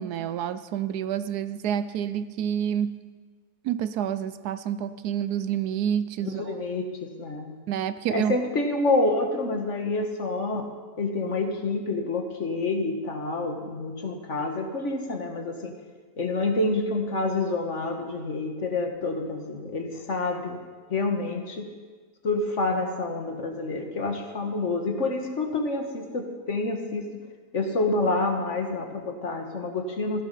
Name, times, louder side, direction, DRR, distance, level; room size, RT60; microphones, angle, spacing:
voice 1, 0.0-3.0 3.6-6.5 7.7-8.4, right 9 dB, 75° right, 13 dB, 1.1 m, -28 dB
voice 2, 6.2-7.6 8.1-10.7 11.0-15.7 16.2-20.6 20.9-21.7 22.2-27.1 27.5-30.2, left 2 dB, 50° left, 4 dB, 1.6 m, -28 dB
15.0 x 11.5 x 5.4 m, 1.4 s
omnidirectional pair, 1.7 m